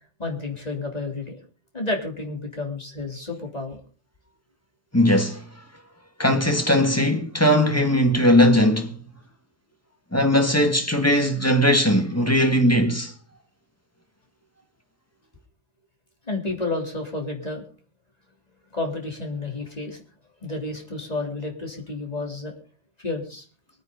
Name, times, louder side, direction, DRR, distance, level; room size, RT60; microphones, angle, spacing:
voice 1, 0.2-1.4 1.7-3.8 16.3-17.6 18.7-20.0 20.4-22.5 23.0-23.4, left 2 dB, 35° left, 3.4 m, -30 dB
voice 2, 4.9-5.4 6.2-9.0 10.1-13.1, equal, 15° left, 1.7 m, -19 dB
24.0 x 9.4 x 3.9 m
omnidirectional pair, 1.2 m